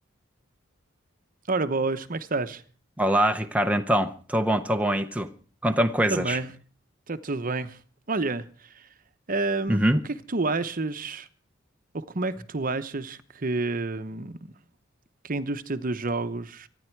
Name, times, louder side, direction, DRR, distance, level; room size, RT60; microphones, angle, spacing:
voice 1, 1.5-2.6 6.1-6.5 7.1-7.8 8.1-8.9 9.3-9.9 10.3-11.3 11.9-14.4 15.2-16.7, right 3 dB, 45° right, 0.9 m, -29 dB
voice 2, 3.0-5.3 5.6-6.4 9.7-10.0, right 1 dB, 5° right, 0.7 m, -23 dB
25.0 x 10.0 x 4.6 m
head